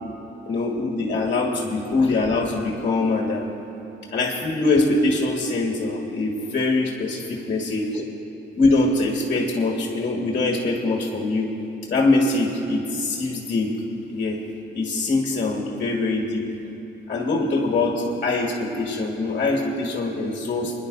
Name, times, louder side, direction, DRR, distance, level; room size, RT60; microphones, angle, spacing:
voice 1, 0.5-3.5 4.1-8.0 8.6-11.5 11.9-13.7 14.1-14.4 14.7-16.4 17.1-20.7, left 2 dB, 45° left, -1 dB, 1.7 m, -23 dB
29.5 x 10.5 x 2.7 m, 2.9 s
cardioid pair, 90°, 20 cm